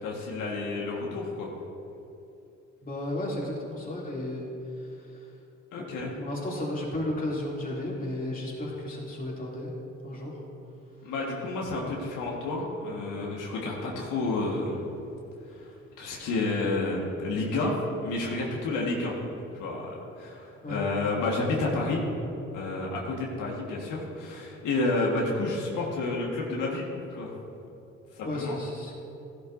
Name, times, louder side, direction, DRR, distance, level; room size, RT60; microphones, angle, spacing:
voice 1, 0.0-1.5 5.7-6.1 11.0-14.8 15.5-15.7 16.0-19.1 19.5-22.0 22.5-26.9 27.1-27.3 28.1-28.5, left 2 dB, 85° left, -3 dB, 1.6 m, -30 dB
voice 2, 2.8-4.5 4.8-5.2 5.8-5.9 6.2-9.7 10.0-10.4 20.6-20.8 28.2-29.0, left 1 dB, 30° left, -4 dB, 2.7 m, -33 dB
14.5 x 11.5 x 2.6 m, 2.8 s
cardioid pair, 90°, 30 cm